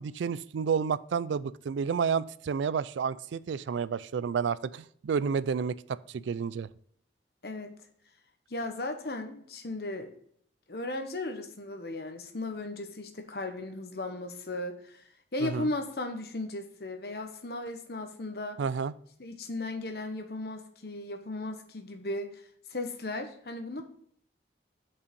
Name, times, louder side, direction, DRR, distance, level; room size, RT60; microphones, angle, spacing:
voice 1, 0.0-6.7 15.4-15.7 18.6-18.9, right 6 dB, 85° right, 18 dB, 0.3 m, -30 dB
voice 2, 7.4-7.7 8.5-10.1 10.7-15.0 15.3-18.6 19.2-22.4 22.7-23.8, left 2 dB, 60° left, 6 dB, 1.0 m, -36 dB
6.9 x 5.4 x 5.3 m, 0.64 s
head